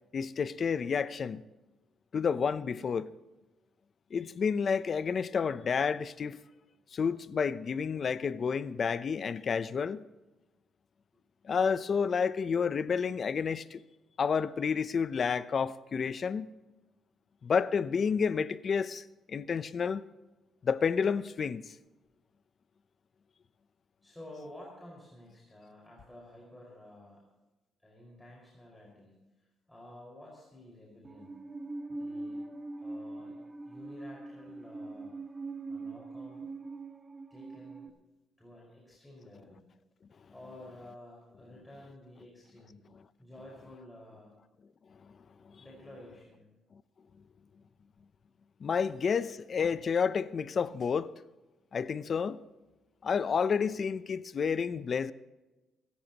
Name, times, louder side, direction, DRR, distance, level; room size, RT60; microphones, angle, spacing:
voice 1, 0.1-1.4 2.1-3.1 4.1-6.4 6.9-10.0 11.4-13.8 14.2-16.5 17.4-20.0 20.6-21.7 48.6-51.1 51.7-52.4 53.0-55.1, left 6 dB, 50° left, 0.7 m, -30 dB
voice 2, 24.0-27.2 27.8-29.1 29.7-31.4 31.9-32.4 32.8-35.1 35.7-36.5 37.3-37.9 38.4-39.6 40.3-42.8 43.2-44.3 45.6-46.5, left 1 dB, 10° left, 5.3 m, -51 dB
Musical instrument, 31.0-37.9, right 2 dB, 25° right, 1.7 m, -42 dB
24.5 x 14.0 x 3.0 m
cardioid pair, 90°, 0 cm